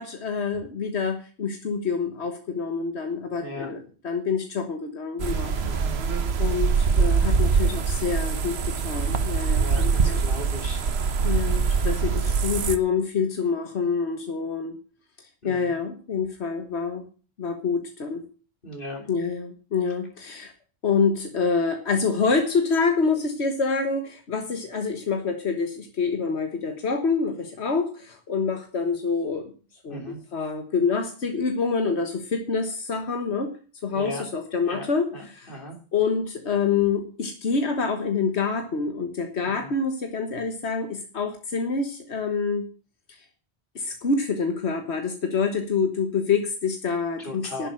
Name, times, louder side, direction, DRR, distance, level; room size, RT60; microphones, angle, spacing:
voice 1, 0.0-5.6 6.4-10.2 11.2-14.8 15.4-17.1 17.4-18.2 19.1-20.5 20.8-29.5 29.8-33.5 33.8-35.6 35.9-42.7 43.1-43.2 43.7-47.7, left 5 dB, 90° left, 5 dB, 1.7 m, -27 dB
voice 2, 3.4-3.7 5.6-6.0 9.6-10.8 15.4-15.7 18.6-19.0 29.9-30.2 33.9-34.2 34.6-34.9 35.1-35.8 39.4-39.7 47.2-47.7, left 1 dB, 55° left, 2 dB, 3.7 m, -37 dB
sound 1, 5.2-12.8, right 5 dB, 75° right, 1.2 m, -23 dB
11.0 x 7.5 x 7.8 m, 0.38 s
omnidirectional pair, 1.1 m